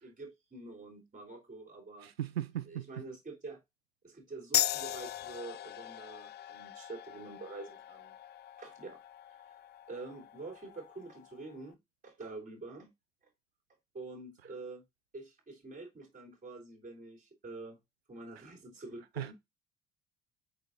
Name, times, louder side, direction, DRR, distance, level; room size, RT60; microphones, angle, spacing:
voice 1, 0.0-2.1 2.7-3.6 4.0-8.2 8.6-9.0 9.9-11.8 12.0-12.9 13.9-14.8 15.1-17.8 18.1-19.3, right 3 dB, 25° right, 3.9 m, -46 dB
voice 2, 2.0-2.9 19.2-19.3, right 11 dB, 85° right, 0.5 m, -37 dB
sound 1, 4.5-11.6, left 13 dB, 35° left, 0.4 m, -38 dB
8.3 x 5.6 x 2.7 m
figure-of-eight pair, 55°, 30 cm